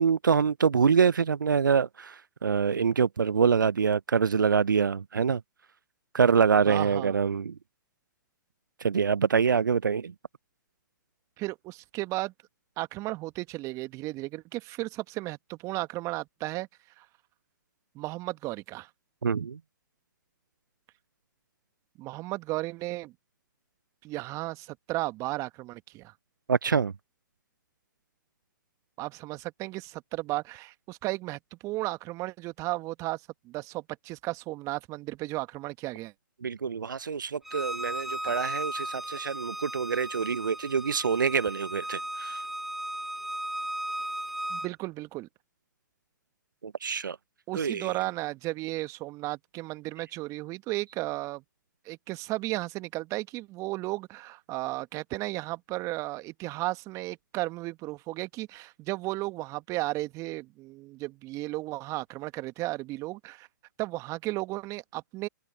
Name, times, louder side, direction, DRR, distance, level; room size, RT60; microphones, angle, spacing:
voice 1, 0.0-5.4 6.1-7.5 8.8-10.1 19.2-19.6 26.5-26.9 36.4-42.4 46.6-47.2 47.5-47.9, right 6 dB, 80° right, 0.5 m, -25 dB
voice 2, 6.7-7.1 11.4-12.3 12.8-16.7 17.0-17.1 17.9-18.9 22.0-23.1 24.0-26.1 29.0-36.1 38.2-38.3 44.5-45.3 47.5-51.4 51.8-63.5 63.8-65.3, right 19 dB, 30° right, 1.5 m, -34 dB
Bowed string instrument, 37.5-44.7, right 1 dB, ahead, 0.7 m, -36 dB
figure-of-eight pair, 120°, 10 cm